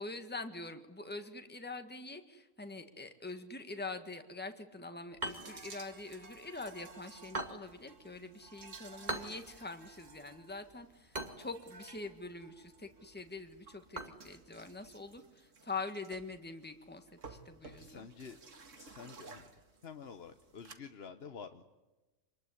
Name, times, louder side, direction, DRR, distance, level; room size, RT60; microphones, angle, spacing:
voice 1, 0.0-18.1, left 3 dB, 10° left, 7 dB, 1.6 m, -44 dB
sound 1, 5.1-15.2, right 2 dB, 35° right, 2.3 m, -46 dB
sound 2, 5.2-20.8, right 4 dB, 70° right, 2.3 m, -56 dB
voice 2, 17.6-18.4 18.8-19.5 19.8-21.6, left 6 dB, 55° left, 7 dB, 1.2 m, -49 dB
27.0 x 21.0 x 9.8 m, 1.1 s
omnidirectional pair, 1.3 m